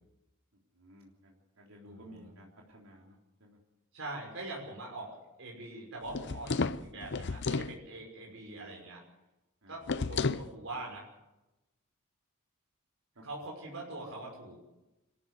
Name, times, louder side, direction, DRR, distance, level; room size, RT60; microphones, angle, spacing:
voice 1, 0.7-3.6 9.6-10.3 13.2-13.3, equal, 80° right, -2 dB, 3.6 m, -55 dB
voice 2, 1.8-2.3 3.9-5.1 5.4-9.0 9.7-11.1 13.2-14.6, right 2 dB, 65° right, -1 dB, 5.9 m, -43 dB
sound 1, 6.1-7.8 9.9-10.5, left 4 dB, 55° left, 0.7 m, -32 dB
26.0 x 13.5 x 8.2 m, 1.0 s
head